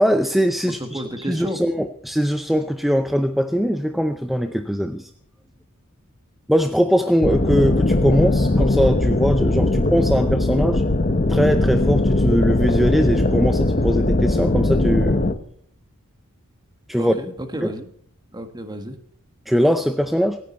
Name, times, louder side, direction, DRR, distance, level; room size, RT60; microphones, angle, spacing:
voice 1, 0.0-5.1 6.5-10.8 11.3-15.2 16.9-17.2 17.6-17.7 19.5-20.4, equal, ahead, 8 dB, 0.6 m, -21 dB
voice 2, 0.7-1.6 16.9-17.9 18.3-19.0, equal, 20° right, 7 dB, 1.6 m, -31 dB
sound 1, 7.2-15.3, left 2 dB, 35° left, 1.0 m, -19 dB
27.0 x 9.5 x 4.3 m, 0.66 s
head